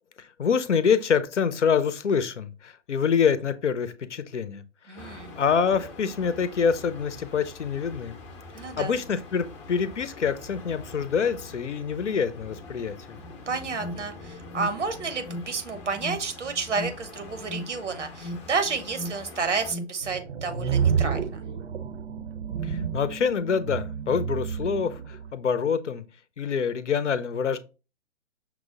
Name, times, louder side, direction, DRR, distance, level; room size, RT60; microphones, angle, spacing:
voice 1, 0.2-8.2 8.8-13.2 22.6-26.0 26.4-27.6, left 6 dB, 75° left, 0.6 m, -26 dB
voice 2, 4.9-5.3 8.5-9.0 13.5-21.4, right 4 dB, 80° right, 1.1 m, -31 dB
sound 1, 5.0-19.7, left 3 dB, 25° left, 0.7 m, -45 dB
Alarm, 13.2-19.9, left 1 dB, 5° right, 0.3 m, -39 dB
sound 2, 20.0-25.3, right 7 dB, 60° right, 0.7 m, -29 dB
6.0 x 2.0 x 3.7 m
figure-of-eight pair, 130°, 36 cm